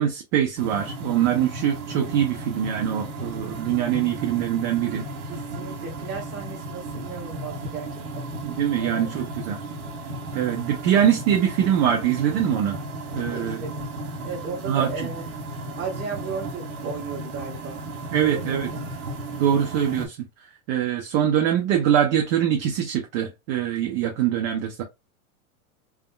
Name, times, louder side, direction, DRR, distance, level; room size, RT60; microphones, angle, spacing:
voice 1, 0.0-5.1 8.4-9.6 10.3-12.8 13.1-13.6 14.7-14.9 18.1-18.7 19.4-20.2 20.7-24.8, right 10 dB, 40° right, 0.6 m, -23 dB
sound 1, 0.6-20.1, right 1 dB, 75° right, 1.4 m, -35 dB
voice 2, 5.3-8.3 8.8-9.1 13.2-13.9 14.2-15.3 15.8-17.8 18.2-19.0, right 5 dB, 25° right, 1.3 m, -35 dB
3.5 x 2.1 x 2.2 m
supercardioid pair, 140°, 43 cm